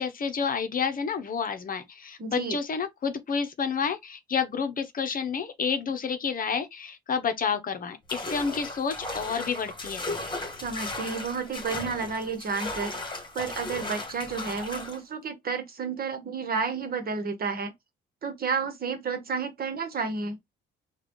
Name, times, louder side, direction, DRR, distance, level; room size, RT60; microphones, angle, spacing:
voice 1, 0.0-10.1, left 6 dB, 45° left, 0.8 m, -29 dB
voice 2, 2.2-2.6 10.6-13.0 13.3-17.7 18.2-20.4, right 5 dB, 50° right, 1.1 m, -31 dB
sound 1, 8.1-15.0, left 2 dB, 25° left, 1.5 m, -36 dB
4.0 x 2.4 x 3.0 m
cardioid pair, 90°, 20 cm